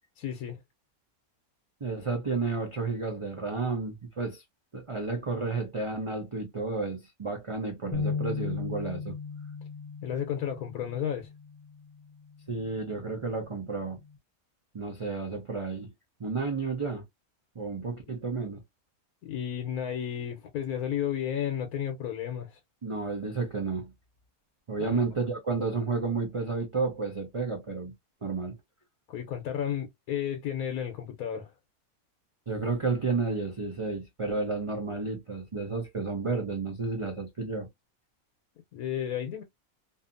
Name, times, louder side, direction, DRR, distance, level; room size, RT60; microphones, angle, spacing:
voice 1, 0.2-0.6 10.0-11.3 19.2-22.6 24.8-25.0 29.1-31.5 38.7-39.4, left 9 dB, 85° left, 1.1 m, -32 dB
voice 2, 1.8-4.4 4.7-9.2 12.5-14.0 14.7-15.9 16.2-17.0 17.6-18.6 22.8-23.9 24.7-27.9 28.2-28.6 32.5-37.7, right 4 dB, 55° right, 0.3 m, -31 dB
sound 1, 7.9-14.2, left 5 dB, 55° left, 0.3 m, -38 dB
2.7 x 2.4 x 2.4 m
omnidirectional pair, 1.5 m